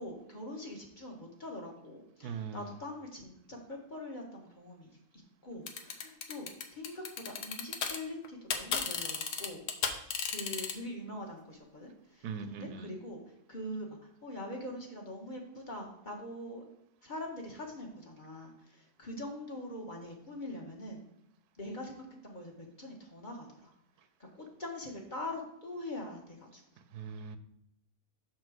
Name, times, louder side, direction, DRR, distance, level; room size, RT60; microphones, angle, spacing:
voice 1, 0.0-5.0 5.4-9.6 10.3-13.2 13.5-16.6 17.0-21.0 21.6-23.7 24.3-26.6, left 1 dB, 35° left, 0 dB, 1.3 m, -43 dB
voice 2, 2.2-2.6 12.2-12.9 27.0-27.4, right 6 dB, 80° right, 11 dB, 1.2 m, -40 dB
sound 1, 5.7-8.0 8.2-10.7, left 6 dB, 75° left, 1.3 m, -33 dB
6.3 x 4.3 x 6.2 m, 0.77 s
omnidirectional pair, 1.6 m